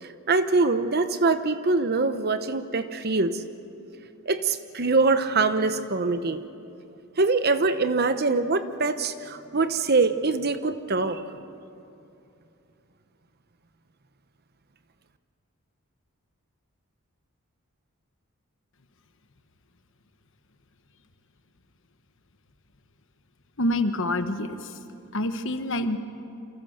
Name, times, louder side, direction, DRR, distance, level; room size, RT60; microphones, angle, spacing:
voice 1, 0.0-3.4 4.3-6.4 7.2-11.2, right 3 dB, 45° right, 10 dB, 1.0 m, -24 dB
voice 2, 23.6-24.5 25.1-26.0, left 1 dB, 60° left, 9 dB, 1.2 m, -26 dB
28.0 x 26.5 x 6.6 m, 2.7 s
head